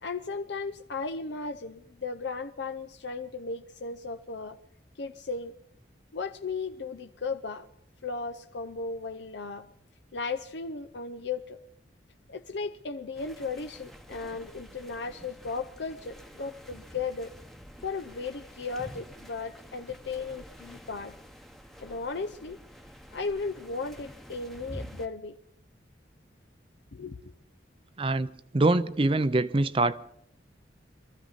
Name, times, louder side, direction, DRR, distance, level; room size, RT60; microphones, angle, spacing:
voice 1, 0.0-4.6 5.0-5.5 6.1-7.7 8.0-9.7 10.1-11.6 12.3-17.3 17.8-21.1 21.8-22.6 23.1-25.4 26.9-27.2, left 4 dB, 70° left, 0.6 m, -36 dB
sound 1, 13.1-25.1, equal, ahead, 0.9 m, -48 dB
voice 2, 28.0-28.3 28.5-30.0, right 2 dB, 30° right, 0.5 m, -24 dB
23.5 x 14.0 x 4.1 m
head